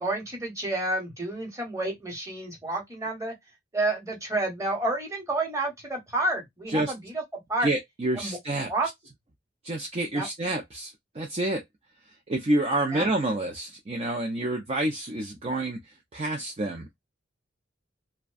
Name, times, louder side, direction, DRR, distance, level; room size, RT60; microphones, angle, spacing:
voice 1, 0.0-3.3 3.7-7.2 7.5-7.7 8.2-8.4 8.7-8.9 10.1-10.3 12.9-13.1, right 2 dB, 15° right, 1.0 m, -29 dB
voice 2, 7.6-8.7 9.6-11.6 12.3-15.8 16.1-17.0, right 1 dB, 30° right, 0.4 m, -28 dB
2.5 x 2.2 x 2.2 m
head